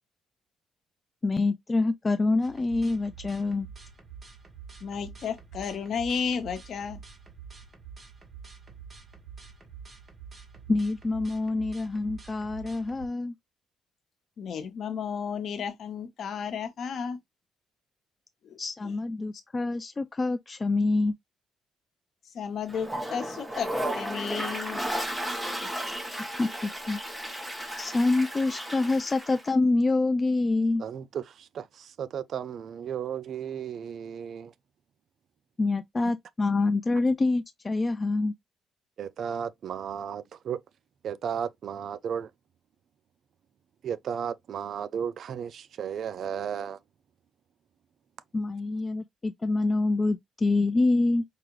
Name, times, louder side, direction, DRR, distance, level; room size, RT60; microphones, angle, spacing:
voice 1, 1.2-3.7 10.7-13.3 18.6-21.1 26.4-27.0 27.8-30.8 35.6-38.3 48.3-51.2, left 3 dB, 30° left, 0.3 m, -26 dB
sound 1, 2.4-13.1, right 6 dB, 30° right, 1.2 m, -47 dB
voice 2, 4.8-7.0 14.4-17.2 18.4-18.9 22.3-23.7 23.9-24.8 25.6-25.8, left 6 dB, 65° left, 1.0 m, -33 dB
Toilet flush, 22.7-29.5, right 1 dB, 10° right, 1.0 m, -34 dB
voice 3, 30.8-31.2 31.5-34.5 39.0-40.6 41.0-42.3 43.8-46.8, right 8 dB, 65° right, 0.3 m, -34 dB
4.7 x 2.4 x 3.0 m
cardioid pair, 90°, 0 cm